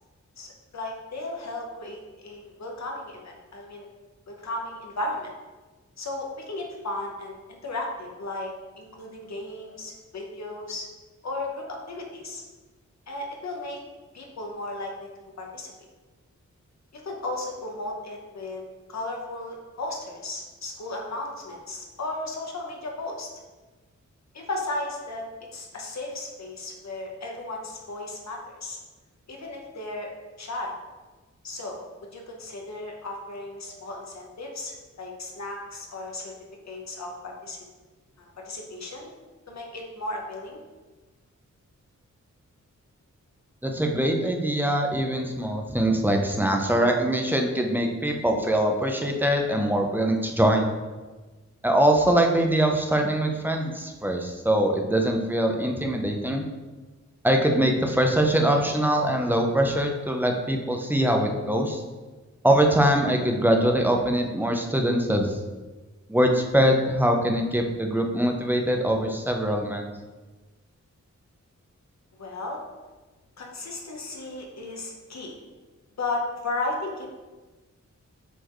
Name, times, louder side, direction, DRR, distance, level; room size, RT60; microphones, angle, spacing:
voice 1, 0.4-3.9 4.3-5.3 6.0-8.5 8.8-10.9 11.2-12.4 13.1-13.8 14.1-15.7 16.9-18.6 18.9-23.3 24.3-25.2 25.5-28.8 29.3-30.1 30.4-30.8 31.4-31.8 32.1-36.3 36.7-37.6 38.2-39.1 39.5-40.6 72.2-72.6 73.4-75.3 76.0-77.1, left 2 dB, 65° left, 0 dB, 1.0 m, -35 dB
voice 2, 43.6-50.7 51.6-56.4 57.2-61.8 62.4-65.4 66.1-69.9, right 1 dB, 5° right, 2 dB, 0.7 m, -23 dB
7.9 x 4.4 x 3.1 m, 1.3 s
wide cardioid pair, 130°, 30 cm